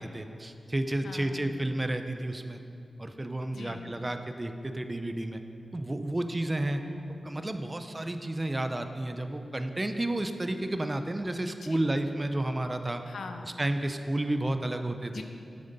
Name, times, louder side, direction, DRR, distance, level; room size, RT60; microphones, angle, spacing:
voice 1, 0.0-2.6 3.0-5.4 5.7-6.8 7.2-13.0 13.4-15.2, right 1 dB, 20° right, 7 dB, 0.5 m, -31 dB
voice 2, 1.0-1.5 3.5-4.0 6.7-7.2 11.6-12.0 13.1-13.6 15.1-15.2, left 4 dB, 85° left, 5 dB, 0.7 m, -43 dB
10.5 x 8.8 x 4.0 m, 2.5 s
wide cardioid pair, 125°, 0 cm